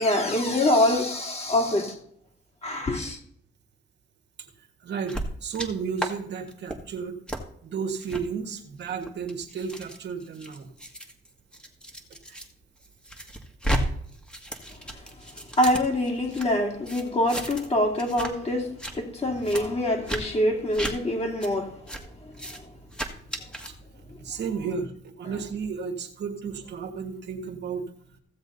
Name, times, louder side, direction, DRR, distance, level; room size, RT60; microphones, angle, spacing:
voice 1, 0.0-2.0 2.6-3.2 15.6-21.7 22.2-22.6, left 1 dB, 30° left, 2.6 m, -25 dB
voice 2, 4.8-7.2 7.6-10.7 12.3-12.4 24.2-27.8, right 6 dB, 60° right, 1.7 m, -33 dB
sound 1, 5.1-5.7 6.0-6.1 6.5-6.8 7.3-7.4 8.0-8.2 8.9-12.5 12.8-13.8 14.1-16.5 16.9-17.7 18.0-18.3 18.6-18.9 19.4-19.6 20.1-20.2 20.7-20.9 21.4-21.5 21.9-22.0 22.3-22.6 22.9-23.7, right 1 dB, 5° left, 1.8 m, -33 dB
15.5 x 7.3 x 4.1 m
cardioid pair, 90°, 20 cm